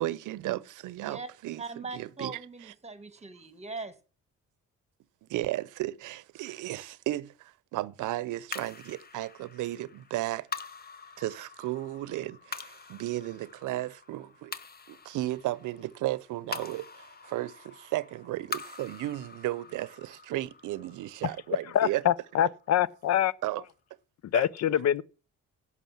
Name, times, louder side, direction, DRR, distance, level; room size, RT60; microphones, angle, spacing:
voice 1, 0.0-2.7 5.2-10.5 11.2-14.6 14.9-22.0 23.4-23.6 24.3-24.5, right 16 dB, 85° right, 0.7 m, -34 dB
voice 2, 1.6-3.9, right 3 dB, 20° right, 1.5 m, -40 dB
sound 1, 8.5-23.0, left 5 dB, 30° left, 0.8 m, -45 dB
voice 3, 21.7-23.3 24.3-25.0, left 11 dB, 60° left, 0.6 m, -25 dB
11.0 x 6.2 x 7.3 m
cardioid pair, 90°, 30 cm